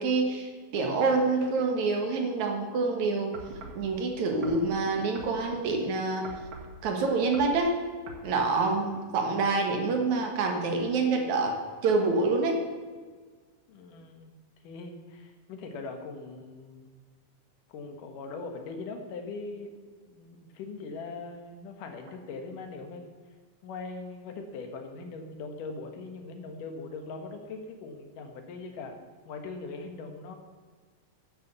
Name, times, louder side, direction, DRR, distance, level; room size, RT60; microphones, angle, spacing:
voice 1, 0.0-3.3 3.7-6.3 6.8-7.8 8.2-11.6 11.8-12.6, right 3 dB, 65° right, 3 dB, 2.8 m, -27 dB
sound 1, 3.3-3.8 4.4-5.8 6.2-6.8 7.2-7.6 8.1-8.3 8.9-9.0, right 4 dB, 50° right, 1.8 m, -43 dB
voice 2, 13.7-14.3 14.6-16.9 17.7-19.7 20.1-23.0 23.6-29.0 29.3-30.4, left 3 dB, 90° left, 5 dB, 3.0 m, -41 dB
10.0 x 9.8 x 6.8 m, 1.5 s
omnidirectional pair, 3.6 m